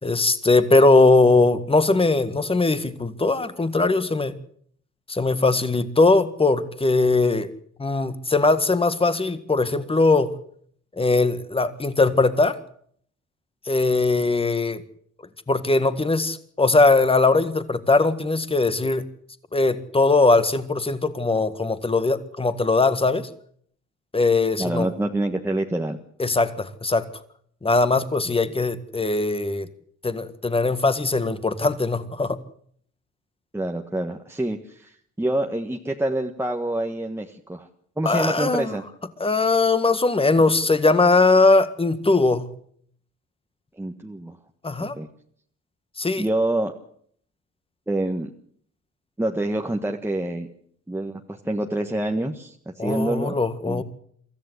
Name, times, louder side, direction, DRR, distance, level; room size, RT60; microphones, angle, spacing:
voice 1, 0.0-4.3 5.1-7.5 7.8-10.3 11.0-12.6 13.7-14.8 15.5-19.1 19.5-23.3 24.1-24.9 26.2-27.1 27.6-29.7 30.0-32.4 38.1-38.8 39.2-42.5 44.6-45.0 46.0-46.3 52.8-53.8, left 3 dB, 20° left, 1.8 m, -20 dB
voice 2, 24.6-26.0 33.5-37.7 38.0-38.8 43.8-44.4 44.8-45.1 46.2-46.7 47.9-48.3 49.2-50.5 50.9-53.4 53.6-53.8, right 1 dB, 10° right, 1.4 m, -26 dB
24.0 x 14.0 x 8.2 m
cardioid pair, 90°, 30 cm